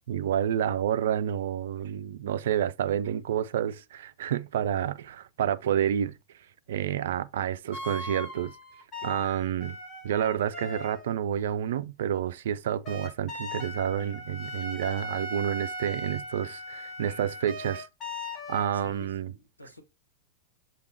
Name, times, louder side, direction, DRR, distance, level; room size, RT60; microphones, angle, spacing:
voice 1, 0.1-6.2 6.7-8.6 9.0-9.8 10.0-17.9 18.5-19.3, right 10 dB, 60° right, 0.4 m, -29 dB
sound 1, 7.7-11.1 12.8-19.1, left 1 dB, 25° left, 1.8 m, -39 dB
voice 2, 18.7-19.8, left 2 dB, 85° left, 1.1 m, -50 dB
6.6 x 2.8 x 2.8 m
figure-of-eight pair, 90°, 0 cm